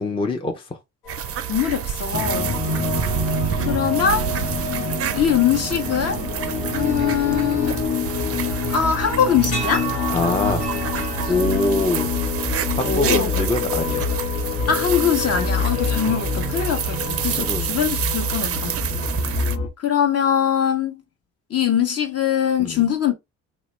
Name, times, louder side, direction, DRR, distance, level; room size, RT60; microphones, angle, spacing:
voice 1, 0.0-0.6 2.3-2.4 10.1-10.7 11.3-12.1 12.7-14.1 17.4-17.7 22.6-22.8, left 2 dB, 15° left, 0.5 m, -24 dB
sound 1, 1.0-17.6, right 1 dB, 90° left, 1.2 m, -38 dB
sound 2, 1.1-19.6, right 11 dB, 45° right, 0.4 m, -28 dB
voice 2, 1.5-2.6 3.6-4.3 5.1-6.2 6.7-7.9 8.7-9.9 12.8-13.5 14.7-18.8 19.8-21.0 21.5-23.1, left 8 dB, 45° left, 0.8 m, -22 dB
sound 3, 2.1-19.7, left 5 dB, 65° left, 1.0 m, -26 dB
2.8 x 2.1 x 3.0 m
supercardioid pair, 65°, 35 cm